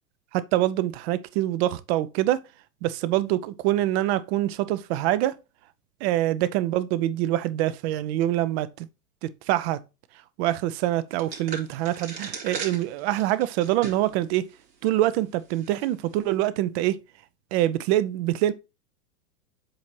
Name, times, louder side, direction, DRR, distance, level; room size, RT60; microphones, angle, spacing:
voice 1, 0.3-2.4 2.8-5.3 6.0-8.9 9.2-9.8 10.4-14.5 14.8-17.0 17.5-18.5, right 14 dB, 40° right, 0.6 m, -25 dB
sound 1, 11.2-14.2 14.6-14.7 15.5-15.9, right 5 dB, 85° right, 2.6 m, -38 dB
7.7 x 2.8 x 4.4 m
hypercardioid pair, 110°, 49 cm